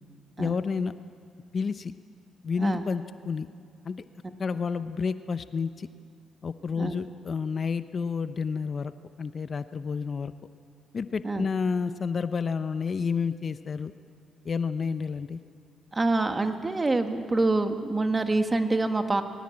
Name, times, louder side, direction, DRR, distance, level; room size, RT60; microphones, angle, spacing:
voice 1, 0.4-0.9 1.5-1.9 2.4-3.5 3.8-4.0 4.4-5.9 6.4-8.9 9.2-10.3 10.9-13.9 14.4-15.4, left 5 dB, 40° left, 12 dB, 0.7 m, -30 dB
voice 2, 15.9-19.2, right 2 dB, 20° right, 7 dB, 1.7 m, -26 dB
21.5 x 18.5 x 8.6 m, 2.2 s
cardioid pair, 90°, 0 cm